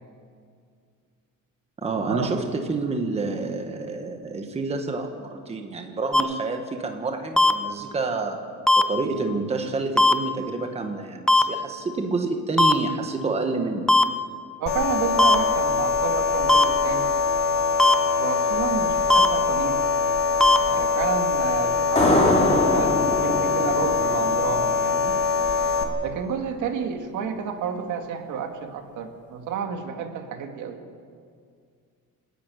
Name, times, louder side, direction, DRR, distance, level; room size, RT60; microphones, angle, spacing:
voice 1, 1.8-8.4 8.8-14.1, right 3 dB, 20° right, 5 dB, 1.4 m, -28 dB
sound 1, 6.1-6.2 7.4-7.5 8.7-8.8 10.0-10.1 11.3-11.4 12.6-12.7 13.9-14.0 15.2-15.3 16.5-16.6 17.8-17.9 19.1-19.3 20.4-20.6, left 2 dB, ahead, 0.5 m, -16 dB
voice 2, 14.6-17.2 18.2-19.9 20.7-22.4 22.7-25.2 26.0-30.8, right 7 dB, 70° right, 5 dB, 2.1 m, -30 dB
sound 2, 14.7-25.8, left 5 dB, 65° left, 2.9 m, -23 dB
sound 3, 22.0-25.3, left 2 dB, 25° left, 3.3 m, -24 dB
28.0 x 10.5 x 9.2 m, 2.2 s
cardioid pair, 165°, 31 cm